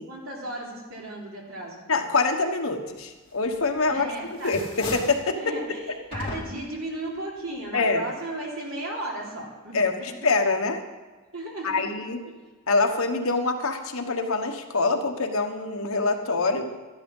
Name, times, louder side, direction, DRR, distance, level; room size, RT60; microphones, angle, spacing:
voice 1, 0.1-1.8 3.9-4.5 5.3-10.3 11.3-11.9 12.2-12.3, right 1 dB, 65° right, -3 dB, 3.6 m, -35 dB
voice 2, 1.9-4.1 4.4-5.4 7.7-8.0 9.7-10.8 11.6-12.2 12.7-16.8, left 3 dB, 70° left, 5 dB, 1.3 m, -25 dB
sound 1, 3.5-4.0 4.3-5.3 6.1-6.8, left 2 dB, 25° left, 3.3 m, -36 dB
12.5 x 10.5 x 5.5 m, 1.3 s
head